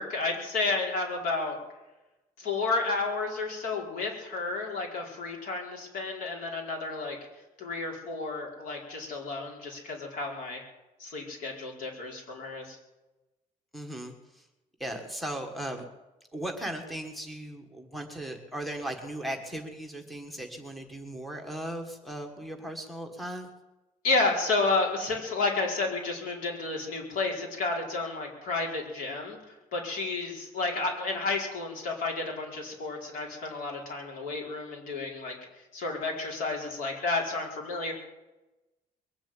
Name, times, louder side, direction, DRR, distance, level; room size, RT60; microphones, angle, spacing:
voice 1, 0.0-1.6 2.4-7.2 7.6-10.6 11.0-12.8 24.0-29.4 29.7-35.3 35.7-37.9, left 3 dB, 90° left, 0 dB, 4.9 m, -31 dB
voice 2, 13.7-14.4 14.8-15.8 16.3-23.5, right 1 dB, ahead, 2 dB, 1.5 m, -37 dB
22.0 x 7.4 x 9.0 m, 1.0 s
cardioid pair, 170°, 14 cm